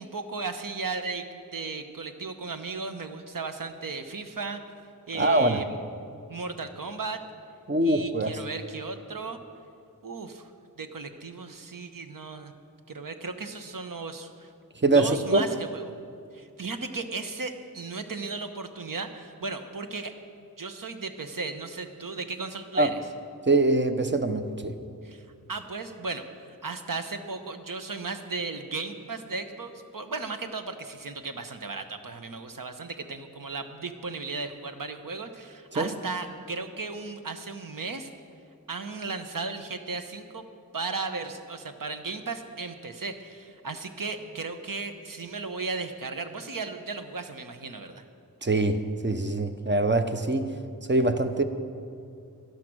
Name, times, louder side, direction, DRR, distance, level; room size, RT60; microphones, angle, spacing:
voice 1, 0.0-4.6 5.1-5.8 6.3-7.2 7.8-9.4 10.0-10.5 10.8-12.5 12.9-14.5 14.8-15.9 16.3-20.1 20.6-23.0 25.0-26.3 26.6-38.1 38.7-40.4 40.7-48.0, right 4 dB, 65° right, 8 dB, 1.1 m, -35 dB
voice 2, 5.1-5.6 7.7-8.4 14.8-15.4 22.8-22.9 23.5-24.7 35.7-35.9 48.4-50.5 50.9-51.4, right 2 dB, 30° right, 8 dB, 0.9 m, -23 dB
12.0 x 11.5 x 6.2 m, 2.4 s
cardioid pair, 45°, 36 cm